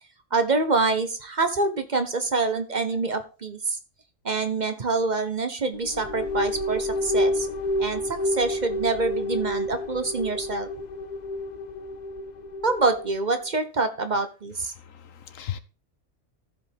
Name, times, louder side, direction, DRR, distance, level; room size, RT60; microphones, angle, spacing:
voice 1, 0.3-3.8 4.2-7.5 7.8-10.7 12.6-14.7, right 3 dB, 40° right, 8 dB, 1.0 m, -26 dB
sound 1, 5.7-13.3, left 1 dB, 50° left, 0.5 m, -29 dB
voice 2, 14.7-15.6, left 10 dB, 90° left, 12 dB, 1.3 m, -36 dB
14.5 x 5.2 x 3.6 m, 0.34 s
omnidirectional pair, 1.3 m